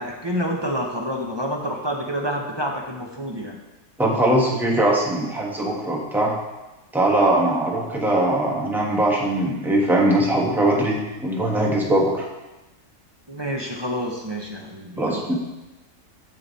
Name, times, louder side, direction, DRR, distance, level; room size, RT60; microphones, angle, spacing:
voice 1, 0.0-3.6 13.3-15.3, equal, 25° right, 0 dB, 0.6 m, -28 dB
voice 2, 4.0-6.3 6.9-12.2 15.0-15.4, right 1 dB, ahead, -3 dB, 1.1 m, -21 dB
7.6 x 6.9 x 4.1 m, 1.0 s
omnidirectional pair, 1.6 m